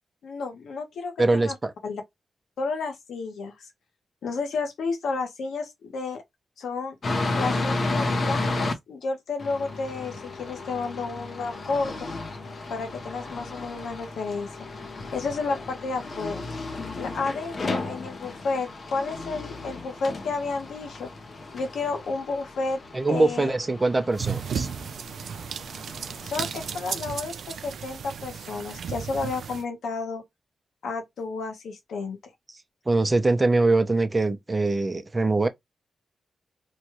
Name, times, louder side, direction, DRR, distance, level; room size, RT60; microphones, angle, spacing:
voice 1, 0.2-1.5 1.8-2.0 2.6-3.7 4.2-6.2 6.6-7.0 7.4-12.1 12.7-14.5 15.1-16.4 17.0-21.1 21.5-22.8 23.1-23.5 26.2-30.2 30.8-32.2, left 4 dB, 85° left, 0.9 m, -31 dB
voice 2, 1.2-1.7 22.9-24.7 32.9-35.5, right 2 dB, 25° right, 0.5 m, -23 dB
sound 1, 7.0-8.7 9.4-26.8, left 2 dB, 50° left, 0.7 m, -33 dB
sound 2, 24.1-29.6, right 7 dB, 80° right, 0.3 m, -34 dB
3.0 x 2.3 x 2.9 m
cardioid pair, 95°, 0 cm